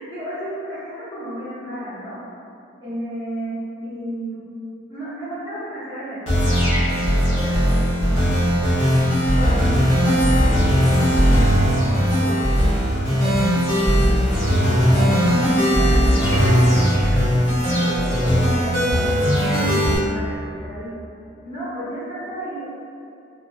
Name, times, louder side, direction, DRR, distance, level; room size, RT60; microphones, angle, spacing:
voice 1, 0.0-2.2 2.8-4.4 4.9-8.9 9.3-13.3 14.4-20.9 21.4-22.7, equal, 20° left, -15 dB, 0.7 m, -33 dB
sound 1, 6.3-20.0, equal, 85° left, 0.9 m, -18 dB
2.6 x 2.4 x 2.3 m, 2.6 s
head